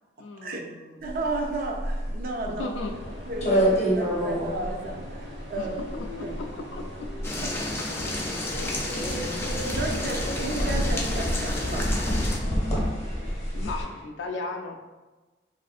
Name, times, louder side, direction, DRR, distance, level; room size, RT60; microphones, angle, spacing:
voice 1, 0.2-1.0 2.5-3.0 5.6-7.1 9.0-9.4 13.5-14.8, left 3 dB, 80° left, 4 dB, 0.4 m, -37 dB
voice 2, 1.0-2.7 3.3-5.8 6.2-6.3 9.7-11.9, right 2 dB, 50° right, 2 dB, 0.4 m, -33 dB
sound 1, 1.1-13.8, equal, 35° left, 0.7 m, -28 dB
sound 2, 2.8-14.0, equal, 85° right, 1.0 m, -40 dB
sound 3, 7.2-12.4, left 1 dB, 15° left, 0.4 m, -32 dB
3.4 x 2.5 x 2.4 m, 1.2 s
head